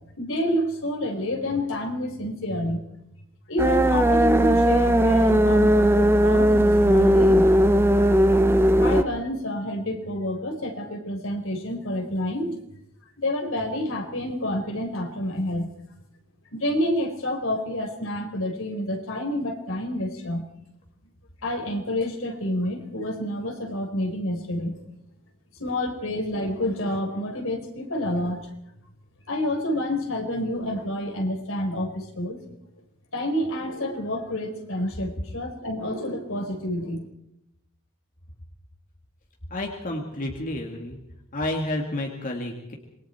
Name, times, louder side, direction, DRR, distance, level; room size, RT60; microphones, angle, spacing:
voice 1, 0.2-2.8 3.5-7.5 8.8-12.6 13.2-15.7 16.5-20.5 21.4-24.8 25.6-28.4 29.3-32.4 33.1-37.0, left 1 dB, 70° left, 3 dB, 4.3 m, -28 dB
sound 1, 3.6-9.0, equal, 10° right, 0.9 m, -18 dB
voice 2, 39.5-41.0 41.3-42.7, left 1 dB, 40° left, 1 dB, 2.3 m, -30 dB
26.5 x 22.0 x 4.5 m, 0.82 s
head